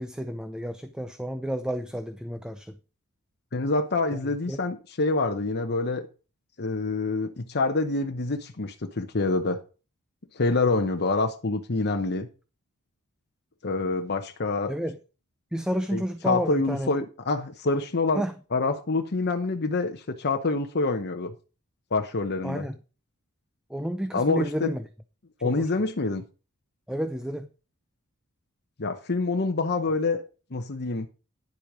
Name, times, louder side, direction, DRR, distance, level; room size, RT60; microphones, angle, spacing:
voice 1, 0.0-2.8 4.5-4.6 14.7-15.0 15.5-16.9 18.1-18.3 22.4-22.7 23.7-24.8 25.4-25.7 26.9-27.5, equal, 5° right, 0.6 m, -30 dB
voice 2, 3.5-6.1 6.6-9.6 10.3-12.3 13.6-14.7 15.9-18.2 18.5-21.3 21.9-22.7 24.1-24.7 25.4-26.2 28.8-30.2 30.5-31.1, left 3 dB, 50° left, 1.0 m, -26 dB
10.5 x 7.7 x 5.0 m
head